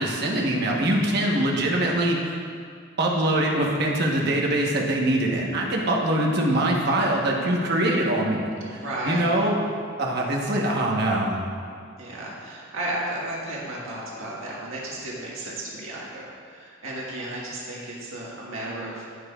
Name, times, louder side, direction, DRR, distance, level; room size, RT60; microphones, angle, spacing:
voice 1, 0.0-2.4 3.0-9.6 10.0-11.4, right 1 dB, 55° right, -1 dB, 1.2 m, -23 dB
voice 2, 8.6-9.3 12.0-16.2 16.5-19.1, right 1 dB, 80° right, -5 dB, 1.7 m, -33 dB
16.5 x 5.6 x 2.4 m, 2.2 s
head